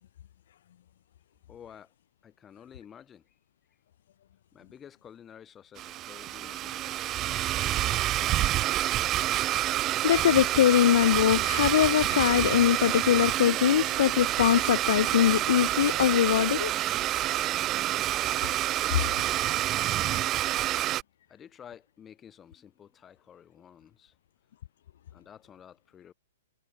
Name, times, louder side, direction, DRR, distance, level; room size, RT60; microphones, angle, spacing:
voice 1, 1.5-1.9 2.2-3.4 4.5-8.8 21.3-24.2 25.1-26.1, left 8 dB, 15° left, 4.0 m, -52 dB
Domestic sounds home sounds, 5.8-21.0, right 14 dB, 20° right, 0.4 m, -28 dB
voice 2, 10.0-16.7, left 11 dB, 55° left, 0.4 m, -22 dB
hypercardioid pair, 170°, 0 cm